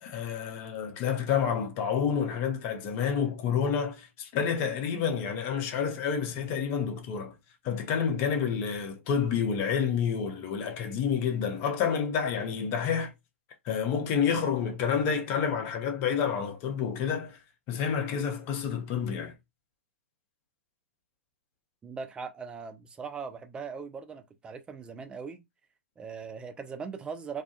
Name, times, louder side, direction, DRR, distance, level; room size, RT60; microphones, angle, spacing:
voice 1, 0.0-7.3 7.6-13.1 13.7-17.4 17.7-19.3, left 7 dB, 35° left, 0.6 m, -29 dB
voice 2, 21.8-25.4 26.0-27.4, right 5 dB, 15° right, 0.4 m, -40 dB
2.3 x 2.1 x 2.5 m
figure-of-eight pair, 115°, 7 cm